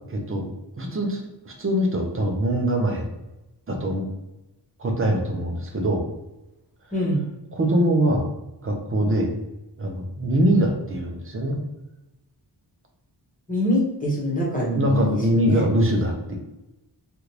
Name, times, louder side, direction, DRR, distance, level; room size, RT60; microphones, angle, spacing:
voice 1, 0.1-0.5 0.8-3.1 3.7-4.0 4.8-6.0 7.5-8.3 8.6-9.3 9.8-11.6 14.7-16.4, right 1 dB, 30° right, 1 dB, 0.6 m, -23 dB
voice 2, 6.9-7.2 13.5-15.1 15.4-15.6, equal, 20° left, -5 dB, 1.1 m, -24 dB
3.4 x 2.5 x 2.9 m, 0.97 s
wide cardioid pair, 145°, 43 cm